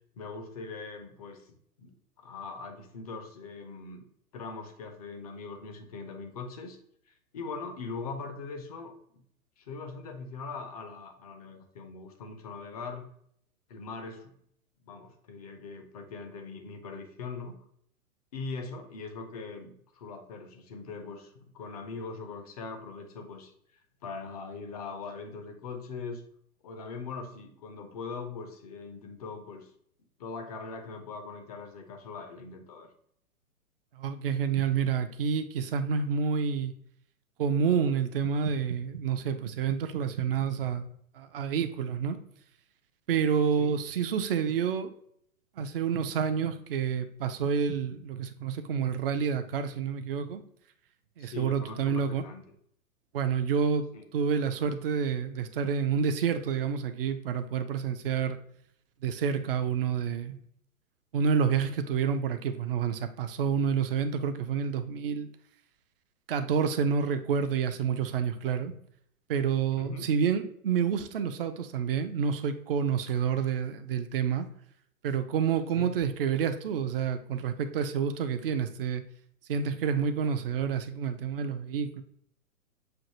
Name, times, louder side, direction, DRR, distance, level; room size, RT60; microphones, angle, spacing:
voice 1, 0.2-4.1 4.3-6.8 7.1-9.2 9.6-13.1 13.7-14.3 14.8-17.6 18.3-23.5 24.0-26.2 26.6-29.7 30.2-32.9 43.6-43.8 51.2-52.4 53.9-54.0 69.8-70.1 75.7-76.0, left 4 dB, 30° left, 5 dB, 0.4 m, -41 dB
voice 2, 34.0-36.7 37.4-40.9 41.2-42.2 43.1-44.9 45.6-50.4 51.2-52.2 53.1-53.8 54.1-58.4 59.0-60.4 61.1-65.3 66.3-68.7 69.3-74.5 75.0-79.0 79.5-82.0, right 7 dB, 40° right, 9 dB, 0.4 m, -28 dB
6.3 x 2.5 x 2.8 m, 0.67 s
figure-of-eight pair, 115°, 44 cm